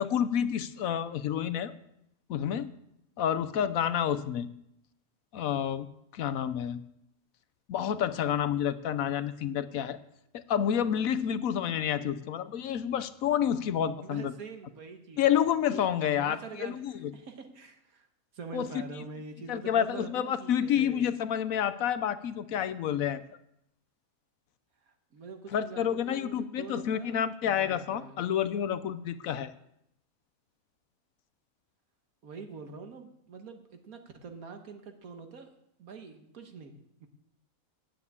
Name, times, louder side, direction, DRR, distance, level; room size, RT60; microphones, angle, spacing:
voice 1, 0.0-1.8 2.3-2.7 3.2-4.5 5.3-5.9 6.1-6.8 7.7-10.0 10.3-14.3 15.2-17.1 18.5-18.8 19.5-23.2 25.5-29.5, left 9 dB, 70° left, 13 dB, 1.1 m, -29 dB
voice 2, 14.0-15.2 15.7-18.1 18.3-21.0 24.9-27.2 27.4-28.2 32.2-35.5 35.8-36.7 37.0-37.1, right 4 dB, 80° right, 6 dB, 1.8 m, -45 dB
9.6 x 9.0 x 8.3 m, 0.77 s
omnidirectional pair, 1.5 m